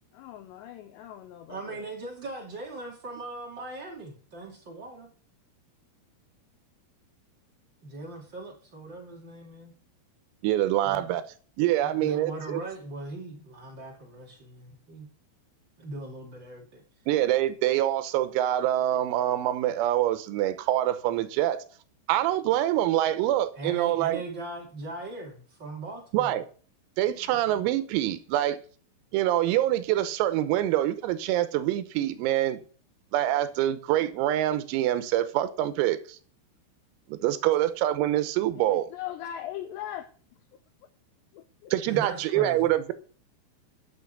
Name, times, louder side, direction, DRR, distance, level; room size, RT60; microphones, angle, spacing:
voice 1, 0.1-1.8 27.2-27.4 38.6-40.1 41.3-41.7, left 11 dB, 90° left, 2.5 m, -40 dB
voice 2, 1.5-5.1 7.8-9.7 10.8-11.0 11.8-15.0 15.8-16.8 23.5-26.4 41.9-42.7, right 2 dB, 40° right, 1.6 m, -39 dB
voice 3, 10.4-11.2 11.6-12.6 17.1-21.6 22.1-24.2 26.1-26.4 27.0-28.6 29.1-32.6 33.1-36.2 37.1-38.9 41.7-42.9, right 13 dB, 90° right, 3.7 m, -25 dB
12.0 x 6.6 x 6.7 m
omnidirectional pair, 5.9 m